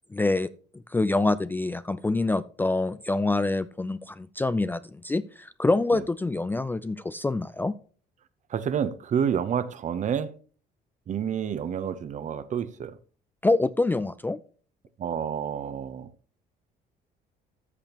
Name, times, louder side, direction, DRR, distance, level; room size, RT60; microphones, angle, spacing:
voice 1, 0.1-0.5 0.9-7.8 13.4-14.4, left 2 dB, 10° left, 0.4 m, -26 dB
voice 2, 8.5-10.3 11.1-13.0 15.0-16.1, right 8 dB, 45° right, 0.8 m, -29 dB
13.5 x 7.0 x 2.9 m
cardioid pair, 110°, 17 cm